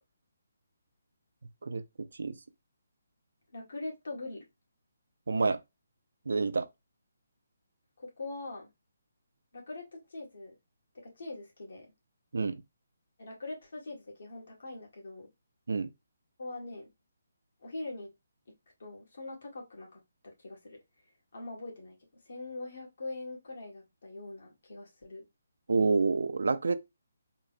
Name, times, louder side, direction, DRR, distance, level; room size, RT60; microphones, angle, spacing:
voice 1, 3.5-4.4 8.0-8.7 9.5-10.5 10.9-11.9 13.2-15.3 16.4-16.9 17.6-18.1 18.8-20.8 21.3-25.2, left 2 dB, 70° left, 1.9 m, -42 dB
voice 2, 5.3-5.6 6.3-6.7 12.3-12.6 15.7-15.9 25.7-26.8, right 4 dB, 80° right, 0.5 m, -28 dB
3.8 x 2.0 x 4.2 m
hypercardioid pair, 160°, 0 cm